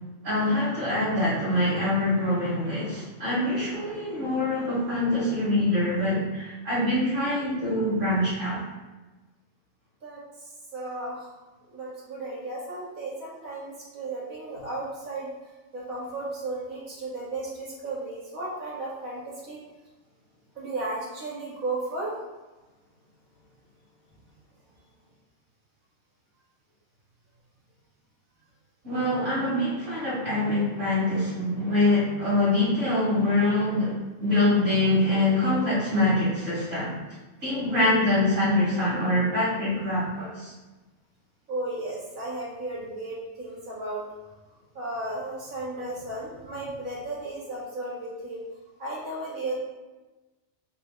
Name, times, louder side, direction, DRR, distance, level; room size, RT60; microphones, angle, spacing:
voice 1, 0.2-8.6 28.8-33.9 34.2-37.0 37.4-40.5, left 1 dB, 65° right, -11 dB, 2.1 m, -24 dB
voice 2, 10.7-11.3 11.7-15.3 15.7-19.6 20.5-22.1 41.5-44.0 44.7-48.4 48.8-49.6, right 2 dB, 90° right, -6 dB, 1.7 m, -34 dB
4.3 x 2.1 x 4.5 m, 1.1 s
omnidirectional pair, 1.4 m